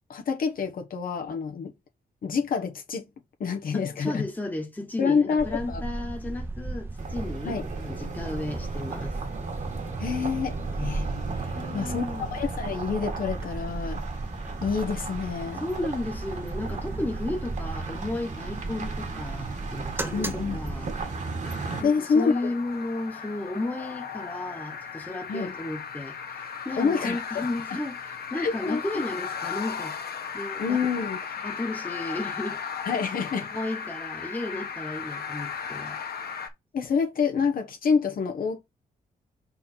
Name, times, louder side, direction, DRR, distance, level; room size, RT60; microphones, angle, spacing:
voice 1, 0.1-1.7 2.2-3.1 3.4-4.2 5.0-5.8 7.4-7.6 10.0-11.1 11.3-14.0 14.6-15.6 20.1-20.6 21.8-22.3 25.3-25.5 26.8-27.8 28.4-28.8 30.6-31.2 32.8-33.5 36.7-38.6, left 5 dB, 65° left, 1.1 m, -27 dB
voice 2, 3.7-9.2 11.6-12.3 15.6-20.9 21.8-30.0 30.3-31.1 31.4-32.6 33.4-36.0, left 2 dB, 10° left, 1.2 m, -34 dB
sound 1, 5.4-21.2, right 2 dB, 15° right, 0.8 m, -36 dB
sound 2, 7.0-21.8, right 4 dB, 50° right, 1.7 m, -36 dB
sound 3, 21.4-36.5, left 7 dB, 80° left, 1.5 m, -36 dB
5.7 x 4.2 x 4.4 m
wide cardioid pair, 160°, 16 cm